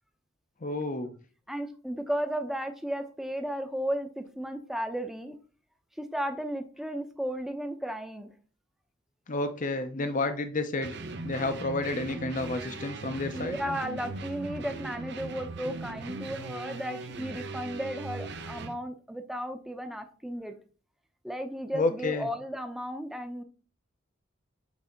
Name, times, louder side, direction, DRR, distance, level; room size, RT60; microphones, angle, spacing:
voice 1, 0.6-1.1 9.3-10.9 11.2-13.6 21.7-22.3, left 2 dB, 40° left, 8 dB, 0.7 m, -30 dB
voice 2, 1.5-5.4 6.0-8.3 13.3-20.5 21.2-23.4, equal, ahead, 6 dB, 0.8 m, -34 dB
sound 1, 10.8-18.8, right 2 dB, 60° right, 0.8 m, -39 dB
8.2 x 3.4 x 5.1 m, 0.38 s
head